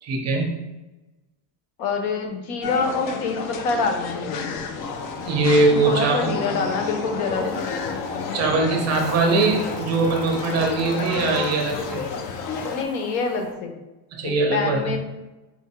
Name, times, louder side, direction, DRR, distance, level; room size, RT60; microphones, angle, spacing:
voice 1, 0.0-0.6 5.2-6.3 8.3-12.0 14.1-15.0, right 3 dB, 35° right, 1 dB, 0.8 m, -21 dB
voice 2, 1.8-4.5 5.9-7.7 12.7-13.7 14.2-15.0, left 4 dB, 80° left, 5 dB, 0.9 m, -26 dB
sound 1, 2.6-12.8, left 5 dB, 45° left, 0.4 m, -31 dB
sound 2, 4.8-13.5, left 1 dB, 20° left, 0.9 m, -37 dB
4.5 x 2.2 x 4.3 m, 1.1 s
cardioid pair, 150°, 47 cm